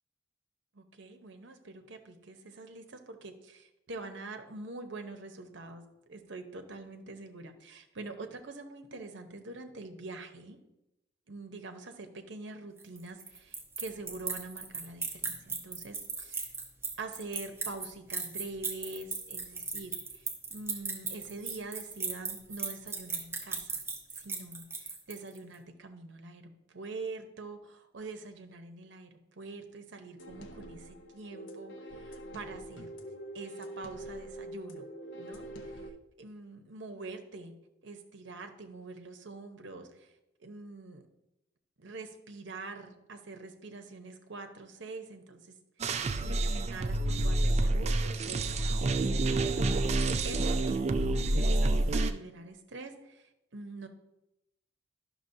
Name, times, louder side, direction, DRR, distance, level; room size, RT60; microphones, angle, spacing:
voice 1, 0.7-5.8 6.1-10.6 11.3-16.5 17.0-23.8 24.1-32.9 33.3-34.9 35.1-35.8 36.2-37.6 37.8-40.1 40.4-41.0 41.8-45.6 45.8-53.9, right 3 dB, 70° right, 6 dB, 0.8 m, -45 dB
sound 1, 12.8-25.4, right 4 dB, 15° right, 0.9 m, -37 dB
sound 2, 30.2-35.9, right 1 dB, 75° left, 0.7 m, -45 dB
sound 3, 45.8-52.1, right 2 dB, 35° right, 0.4 m, -28 dB
11.0 x 6.0 x 2.7 m, 0.92 s
head